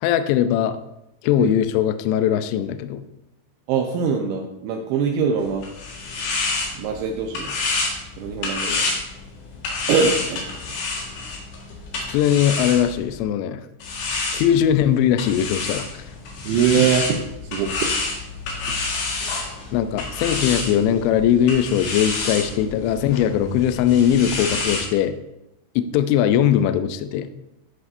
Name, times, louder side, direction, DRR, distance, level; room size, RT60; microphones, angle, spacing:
voice 1, 0.0-0.8 1.2-3.0 8.7-8.9 12.1-13.6 14.3-16.0 19.7-25.1 25.8-27.3, left 10 dB, 85° left, 10 dB, 2.6 m, -20 dB
voice 2, 3.7-5.6 6.8-7.5 8.2-8.8 9.9-10.4 16.4-17.2 17.5-17.9, right 6 dB, 80° right, 2 dB, 2.8 m, -22 dB
sound 1, 5.4-13.2 13.8-24.9, left 3 dB, 65° left, 3.4 m, -29 dB
13.0 x 6.1 x 2.6 m, 0.87 s
omnidirectional pair, 5.7 m